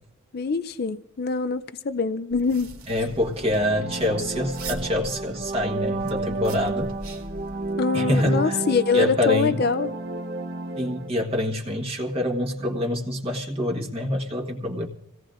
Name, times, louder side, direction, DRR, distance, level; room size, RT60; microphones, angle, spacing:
voice 1, 0.3-2.7 7.8-9.9, left 4 dB, 45° left, 0.5 m, -24 dB
sound 1, 2.3-7.7, right 2 dB, 90° right, 2.3 m, -41 dB
voice 2, 2.9-6.9 7.9-8.6 8.9-9.5 10.8-14.9, left 1 dB, 25° right, 1.3 m, -26 dB
sound 2, 3.2-11.1, right 2 dB, 45° right, 0.9 m, -31 dB
27.0 x 17.5 x 2.5 m
head